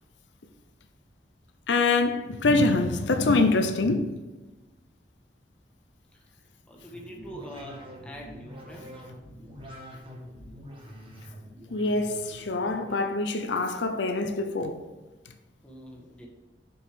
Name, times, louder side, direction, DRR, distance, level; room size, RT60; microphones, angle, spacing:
voice 1, 1.7-4.1 11.7-14.9, left 3 dB, 85° left, 0.7 m, -25 dB
voice 2, 6.7-9.0 15.6-16.3, equal, 5° left, 1.4 m, -44 dB
sound 1, 6.8-13.1, equal, 30° right, 1.4 m, -46 dB
6.9 x 6.4 x 3.7 m
head